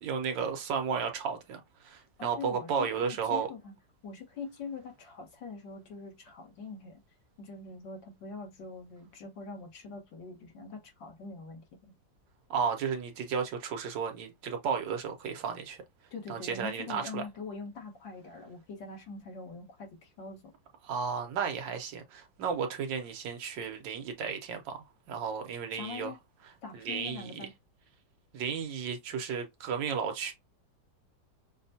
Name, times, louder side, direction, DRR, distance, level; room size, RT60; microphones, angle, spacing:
voice 1, 0.0-3.5 12.5-15.8 16.3-17.2 20.8-26.1 26.7-27.5 28.3-30.3, right 6 dB, 75° right, 1.5 m, -33 dB
voice 2, 2.2-3.7 4.0-7.0 7.4-11.9 16.1-20.4 25.7-26.2 26.6-27.5, left 4 dB, 70° left, 2.1 m, -43 dB
6.1 x 2.3 x 2.7 m
omnidirectional pair, 2.1 m